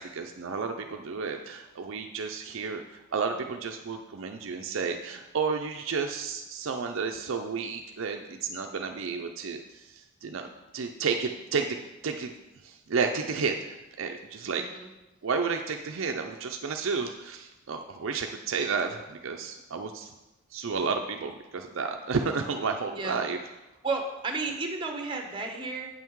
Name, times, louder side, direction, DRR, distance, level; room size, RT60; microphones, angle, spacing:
voice 1, 0.0-11.8 12.0-12.3 12.6-14.7 15.2-20.1 20.5-23.4, right 5 dB, 60° right, 4 dB, 0.5 m, -32 dB
voice 2, 14.6-14.9 22.9-23.2 23.8-25.9, right 3 dB, 25° right, 3 dB, 1.0 m, -32 dB
8.6 x 5.7 x 4.6 m, 1.0 s
head